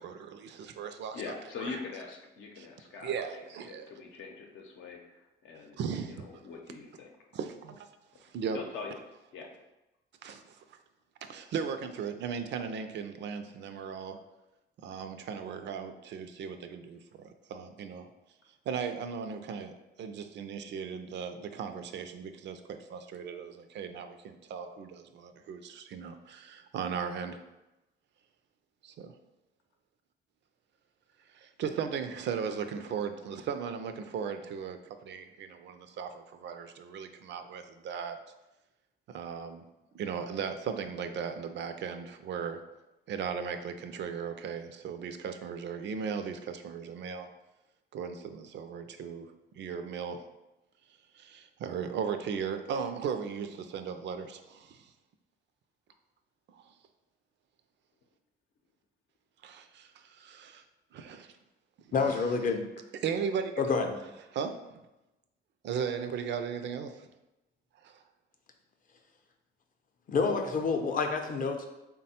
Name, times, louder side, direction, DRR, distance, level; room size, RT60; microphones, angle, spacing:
voice 1, 0.0-1.2 1.6-1.8 2.6-2.7 3.0-3.9 5.8-6.4 7.3-7.9 8.2-8.6 10.2-10.8 11.2-14.2 14.8-18.1 18.7-27.4 28.8-29.1 31.3-38.2 39.1-39.6 39.9-42.6 43.1-47.3 47.9-50.2 51.1-54.9 56.5-56.7 59.4-60.6 60.9-61.3 63.0-63.7 64.3-64.8 65.6-67.1 67.8-68.0, right 6 dB, 65° right, 8 dB, 0.4 m, -37 dB
voice 2, 1.1-5.8 6.1-7.1 8.5-9.0 9.3-9.5, left 4 dB, 80° left, 2 dB, 0.7 m, -43 dB
voice 3, 61.9-62.6 63.6-64.0 70.1-71.7, left 4 dB, 45° left, 5 dB, 0.5 m, -28 dB
3.5 x 2.2 x 4.2 m, 0.97 s
cardioid pair, 90°, 20 cm